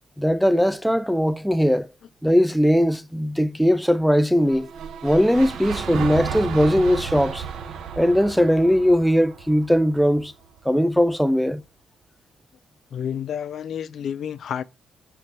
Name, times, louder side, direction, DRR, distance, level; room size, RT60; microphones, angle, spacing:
voice 1, 0.2-1.9 2.2-4.7 5.0-7.4 8.0-10.3 10.6-11.6, equal, ahead, 0.4 m, -19 dB
sound 1, 4.4-10.6, right 7 dB, 75° right, 1.0 m, -33 dB
voice 2, 12.9-14.6, left 8 dB, 60° left, 0.5 m, -30 dB
6.6 x 4.5 x 5.9 m
cardioid pair, 110°, 0 cm